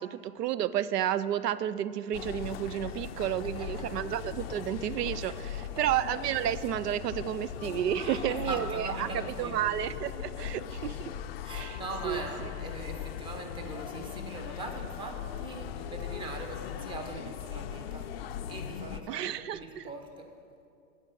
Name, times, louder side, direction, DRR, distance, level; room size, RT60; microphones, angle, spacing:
voice 1, 0.0-5.3 5.8-11.1 11.5-12.2 19.1-19.8, right 11 dB, 85° right, 17 dB, 0.6 m, -31 dB
sound 1, 2.1-19.0, left 9 dB, 45° left, 0.4 m, -39 dB
voice 2, 2.9-3.8 5.3-5.8 8.0-9.6 10.4-10.5 11.4-18.1 18.5-20.3, right 2 dB, 10° right, 4 dB, 0.7 m, -41 dB
9.7 x 7.4 x 6.8 m, 2.4 s
hypercardioid pair, 135°, 46 cm